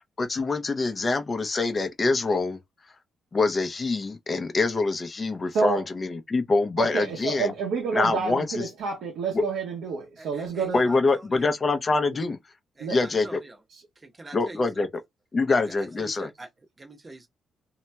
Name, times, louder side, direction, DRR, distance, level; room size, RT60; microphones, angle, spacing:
voice 1, 0.2-2.6 3.3-7.5 7.9-8.5 10.7-12.4 12.9-13.3 14.3-14.9 15.3-16.3, left 3 dB, 30° left, 0.7 m, -25 dB
voice 2, 5.5-5.9 6.8-10.9 12.8-13.0 13.7-13.8, right 5 dB, 80° right, 1.0 m, -29 dB
voice 3, 10.2-11.6 12.8-13.6 14.0-14.8 15.6-16.5 16.8-17.3, right 2 dB, 25° right, 0.9 m, -44 dB
2.8 x 2.8 x 2.2 m
cardioid pair, 90°, 0 cm